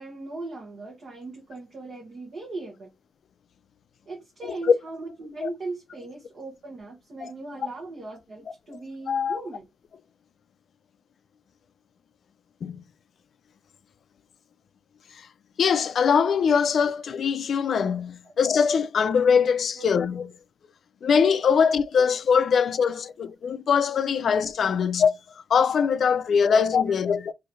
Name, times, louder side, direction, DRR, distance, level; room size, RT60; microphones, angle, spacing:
voice 1, 0.0-2.9 4.1-9.7 18.2-18.3 19.8-19.9 26.5-26.9, right 3 dB, 50° right, 1.1 m, -39 dB
voice 2, 9.1-9.4 12.6-12.8 15.6-20.3 21.0-25.1 25.5-27.3, left 6 dB, 60° left, 0.4 m, -22 dB
3.0 x 2.7 x 4.1 m
cardioid pair, 125°, 0 cm